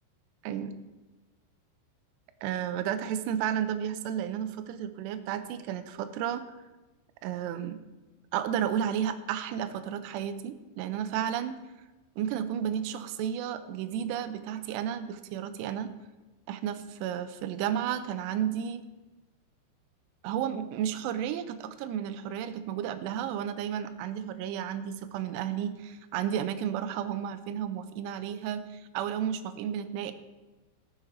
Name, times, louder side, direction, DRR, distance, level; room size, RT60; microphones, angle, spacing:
voice 1, 0.4-0.8 2.4-6.5 7.2-7.8 8.3-11.6 12.2-15.9 16.5-18.8 20.2-30.1, right 9 dB, 85° right, 9 dB, 2.5 m, -32 dB
19.0 x 6.4 x 4.5 m, 1.2 s
omnidirectional pair, 5.6 m